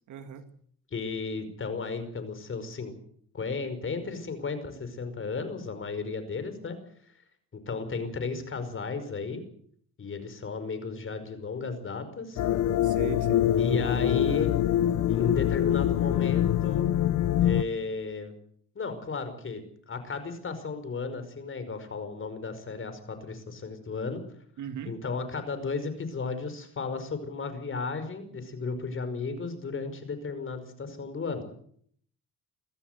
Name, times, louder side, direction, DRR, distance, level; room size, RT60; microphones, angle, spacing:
voice 1, 0.1-0.5 12.8-13.5 24.6-24.9, right 9 dB, 75° right, 9 dB, 2.3 m, -38 dB
voice 2, 0.9-2.9 3.3-6.8 7.5-9.4 10.0-12.4 13.6-14.5 15.1-16.9 17.4-18.3 18.8-24.2 24.9-31.4, left 4 dB, 45° left, 10 dB, 5.3 m, -34 dB
sound 1, 12.4-17.6, left 11 dB, 80° left, 1.1 m, -24 dB
23.0 x 14.5 x 8.2 m, 0.62 s
cardioid pair, 90°, 30 cm